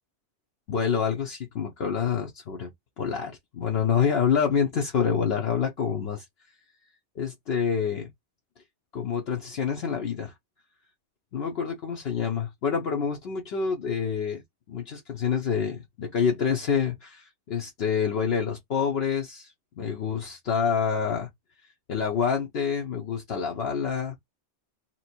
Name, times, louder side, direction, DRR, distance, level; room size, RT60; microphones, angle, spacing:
voice 1, 0.7-2.7 3.0-6.3 7.2-8.1 8.9-10.3 11.3-14.4 14.7-21.3 21.6-24.2, left 6 dB, 65° left, 0.9 m, -27 dB
3.0 x 2.9 x 4.3 m
omnidirectional pair, 1.2 m